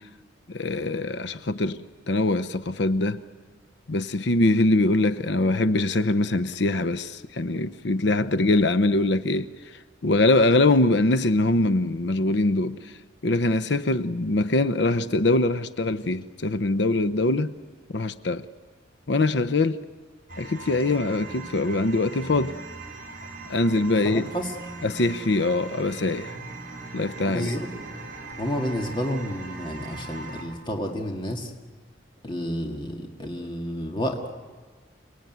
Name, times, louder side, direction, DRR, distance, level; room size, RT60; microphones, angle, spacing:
voice 1, 0.5-3.2 3.9-9.5 10.0-12.9 13.2-17.5 17.9-18.4 19.1-19.8 20.4-22.5 23.5-24.3 24.8-26.4 26.9-27.6, left 2 dB, 65° left, 0.7 m, -23 dB
sound 1, 20.3-30.4, right 3 dB, 45° right, 5.2 m, -40 dB
voice 2, 24.0-24.5 27.2-27.7 28.4-31.5 32.2-34.3, equal, 25° left, 2.1 m, -30 dB
28.5 x 19.5 x 9.3 m
head